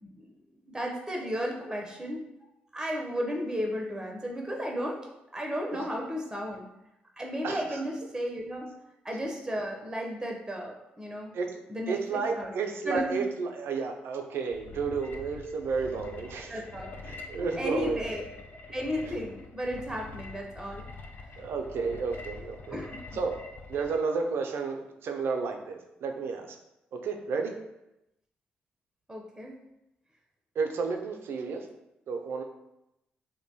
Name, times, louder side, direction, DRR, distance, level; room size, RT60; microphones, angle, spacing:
voice 1, 0.0-0.3 0.7-2.2 2.7-5.0 5.3-6.7 7.2-8.7 9.0-11.3 11.7-12.5 12.9-13.2 16.5-16.9 17.4-18.2 18.7-20.8 22.7-23.0 29.1-29.5, equal, 10° right, 0 dB, 0.5 m, -34 dB
voice 2, 7.4-7.8 11.3-11.6 11.9-16.6 17.1-18.0 19.0-19.1 21.4-22.8 23.1-23.4 23.7-26.5 26.9-27.5 30.6-31.7 32.1-32.4, right 5 dB, 65° right, 4 dB, 0.3 m, -32 dB
sound 1, 14.5-24.0, left 4 dB, 50° left, 0.4 m, -45 dB
2.6 x 2.1 x 2.7 m, 0.90 s
hypercardioid pair, 45°, 4 cm